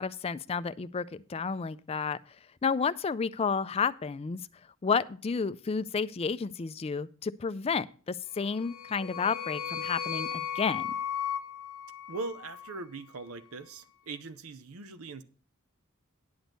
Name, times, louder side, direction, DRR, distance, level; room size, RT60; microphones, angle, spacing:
voice 1, 0.0-2.2 2.6-4.4 4.8-10.9, left 5 dB, 30° left, 0.3 m, -31 dB
sound 1, 8.4-12.8, left 8 dB, 80° left, 0.7 m, -36 dB
voice 2, 12.1-15.2, right 3 dB, 85° right, 0.7 m, -40 dB
10.5 x 6.2 x 5.2 m
head